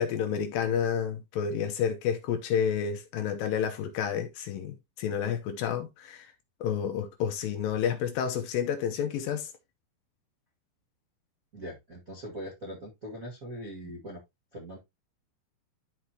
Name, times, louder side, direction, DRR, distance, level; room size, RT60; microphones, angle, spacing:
voice 1, 0.0-6.3 6.6-9.5, left 8 dB, 75° left, 2.3 m, -30 dB
voice 2, 11.5-14.2 14.5-14.8, equal, 50° right, 1.0 m, -41 dB
12.0 x 4.5 x 2.8 m
omnidirectional pair, 4.6 m